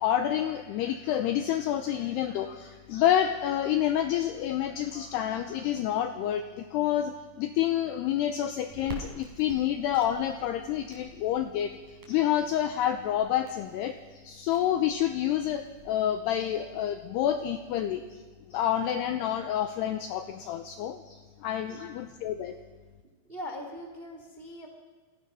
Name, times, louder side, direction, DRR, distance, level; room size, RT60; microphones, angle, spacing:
voice 1, 0.0-11.7 12.1-18.0 18.5-22.6, left 11 dB, 90° left, 7 dB, 2.3 m, -28 dB
Crackle, 8.7-16.0, right 3 dB, 45° right, 4.8 m, -49 dB
voice 2, 23.2-24.7, left 1 dB, 20° right, 3 dB, 1.5 m, -41 dB
27.5 x 18.5 x 5.6 m, 1.4 s
omnidirectional pair, 5.7 m